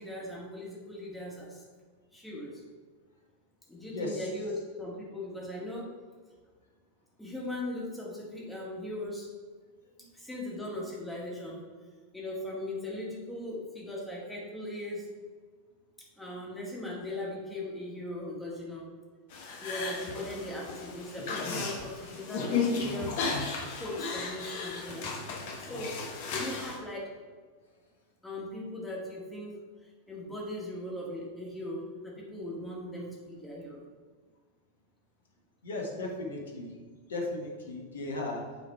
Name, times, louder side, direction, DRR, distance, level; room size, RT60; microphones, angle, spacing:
voice 1, 0.0-1.6 2.1-2.6 3.7-5.9 7.2-9.3 10.1-11.6 12.1-15.1 16.2-18.9 19.6-23.2 23.8-25.1 25.6-26.0 26.3-27.1 28.2-29.6 30.1-33.8, left 1 dB, 5° left, -4 dB, 1.8 m, -39 dB
voice 2, 3.9-4.3 35.6-36.7 37.1-38.4, left 2 dB, 65° left, 0 dB, 1.5 m, -36 dB
sound 1, 19.3-26.8, left 4 dB, 50° left, 1.2 m, -34 dB
8.3 x 3.8 x 4.8 m, 1.5 s
figure-of-eight pair, 90°, 0 cm